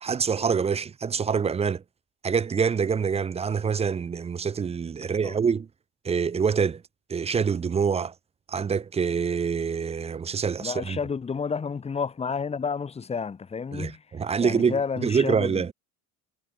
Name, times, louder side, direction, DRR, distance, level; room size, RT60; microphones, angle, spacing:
voice 1, 0.0-1.8 2.2-5.7 6.0-6.8 7.1-8.1 8.5-11.0 13.7-15.7, right 6 dB, 15° right, 0.5 m, -26 dB
voice 2, 10.6-14.0 14.4-15.7, left 5 dB, 15° left, 0.8 m, -30 dB
cardioid pair, 150°, 38 cm